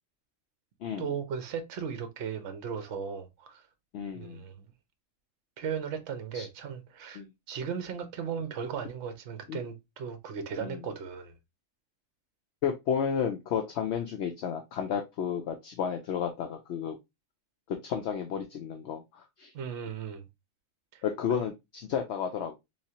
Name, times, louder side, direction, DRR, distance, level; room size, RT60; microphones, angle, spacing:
voice 1, 1.0-3.6 4.1-4.6 5.6-7.2 7.5-11.4 19.5-20.3 20.9-21.0, right 7 dB, 60° right, 1.0 m, -36 dB
voice 2, 3.9-4.4 6.3-6.5 7.2-7.3 9.5-9.6 10.6-10.8 12.6-17.0 17.7-19.5 21.0-22.5, left 7 dB, 65° left, 0.8 m, -32 dB
3.6 x 3.0 x 2.7 m
omnidirectional pair, 1.4 m